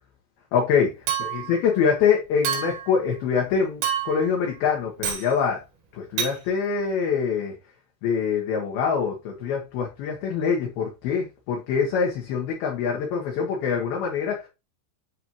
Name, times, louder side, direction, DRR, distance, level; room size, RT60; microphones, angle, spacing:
voice 1, 0.5-0.9 1.5-5.6 5.9-7.5 8.0-14.5, left 6 dB, 70° left, 2.5 m, -24 dB
Chink clink, 1.1-1.6 2.4-2.9 3.8-4.3 5.0-5.3 6.2-6.4, right 8 dB, 90° right, 4.3 m, -28 dB
10.0 x 3.4 x 3.0 m
omnidirectional pair, 5.8 m